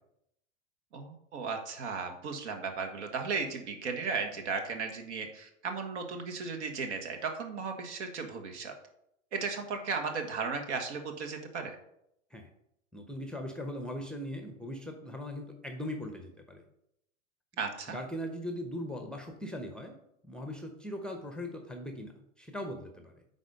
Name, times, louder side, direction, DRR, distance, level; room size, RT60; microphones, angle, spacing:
voice 1, 0.9-8.7 9.3-11.8 17.6-18.0, right 5 dB, 60° right, 4 dB, 1.6 m, -35 dB
voice 2, 12.9-16.6 17.9-20.0 20.2-23.2, left 1 dB, ahead, 4 dB, 0.8 m, -40 dB
9.3 x 4.0 x 5.3 m, 0.78 s
figure-of-eight pair, 95°, 39 cm